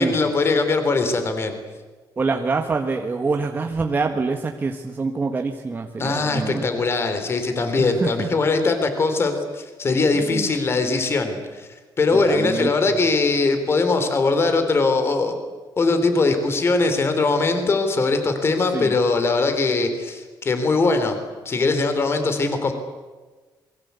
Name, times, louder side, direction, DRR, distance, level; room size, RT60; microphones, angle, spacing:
voice 1, 0.0-1.5 6.0-11.7 12.0-15.4 15.8-21.2 21.5-22.7, left 3 dB, 30° left, 8 dB, 3.7 m, -21 dB
voice 2, 2.2-6.7 7.8-8.4 10.1-10.5 12.1-12.7 18.7-18.9, right 4 dB, 25° right, 4 dB, 1.6 m, -25 dB
27.5 x 22.5 x 8.3 m, 1.3 s
cardioid pair, 165°, 8 cm